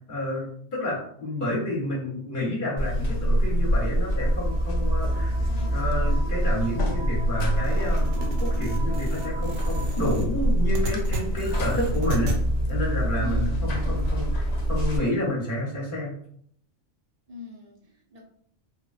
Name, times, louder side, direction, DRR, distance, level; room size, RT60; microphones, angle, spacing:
voice 1, 0.0-5.4 5.7-12.4 12.7-16.1, left 1 dB, 45° left, -3 dB, 0.8 m, -30 dB
Buzz, 2.8-15.0, equal, 85° left, 0.3 m, -25 dB
sound 1, 4.1-9.9, equal, ahead, 0.8 m, -41 dB
sound 2, 7.4-12.4, right 2 dB, 70° right, 0.9 m, -36 dB
voice 2, 13.1-13.9 17.3-18.2, left 1 dB, 45° right, -1 dB, 0.5 m, -40 dB
3.1 x 2.1 x 2.4 m, 0.64 s
omnidirectional pair, 1.4 m